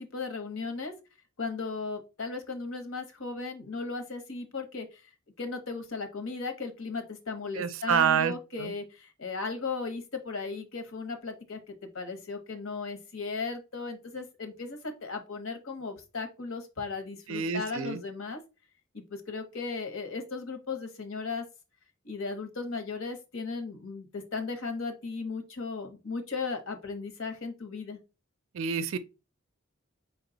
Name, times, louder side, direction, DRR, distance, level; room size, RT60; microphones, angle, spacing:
voice 1, 0.1-0.9 1.4-5.0 5.4-18.4 18.9-21.4 22.0-28.0, left 4 dB, 70° left, 1.0 m, -36 dB
voice 2, 7.6-8.7 17.3-18.0 28.5-29.0, right 7 dB, 70° right, 0.4 m, -28 dB
5.1 x 2.2 x 3.8 m
head